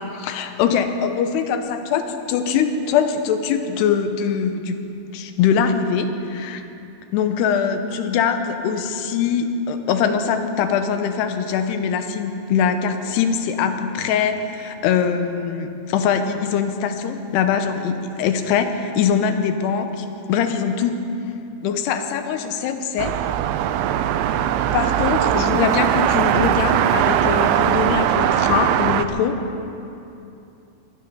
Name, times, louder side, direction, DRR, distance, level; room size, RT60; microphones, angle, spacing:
voice 1, 0.0-4.8 5.1-6.6 7.1-21.0 21.6-23.2 24.7-29.4, left 7 dB, 75° left, 8 dB, 2.8 m, -22 dB
sound 1, 23.0-29.0, right 11 dB, 85° right, 2.2 m, -20 dB
23.0 x 11.0 x 5.5 m, 2.8 s
omnidirectional pair, 5.0 m